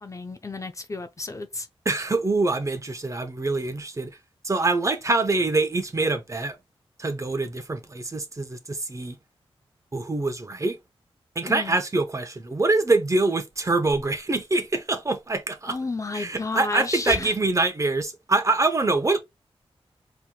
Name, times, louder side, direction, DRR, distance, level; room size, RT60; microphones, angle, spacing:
voice 1, 0.0-1.7 11.5-11.8 15.7-17.3, left 3 dB, 30° left, 0.5 m, -31 dB
voice 2, 1.9-4.1 4.4-6.6 7.0-9.2 9.9-10.8 11.4-15.8 16.1-19.2, right 3 dB, 30° right, 0.8 m, -24 dB
4.6 x 2.9 x 2.3 m
cardioid pair, 65°, 10 cm